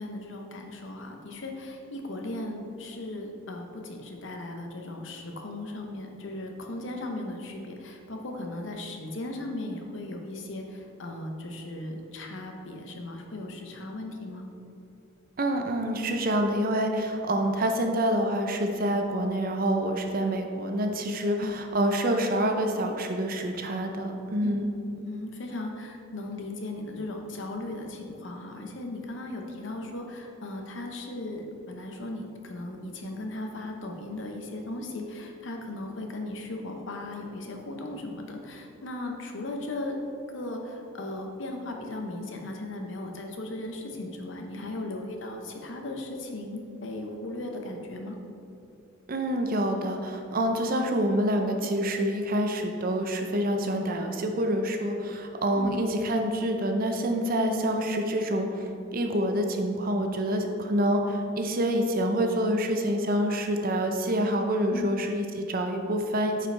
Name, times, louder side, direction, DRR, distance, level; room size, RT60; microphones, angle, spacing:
voice 1, 0.0-14.5 21.4-21.5 24.4-24.5 24.8-40.0 40.3-48.2 55.6-55.8 64.7-64.9, left 2 dB, 65° left, 3 dB, 0.8 m, -37 dB
voice 2, 15.4-24.7 49.1-66.5, right 1 dB, 45° right, 4 dB, 0.6 m, -27 dB
9.3 x 5.0 x 3.4 m, 2.7 s
head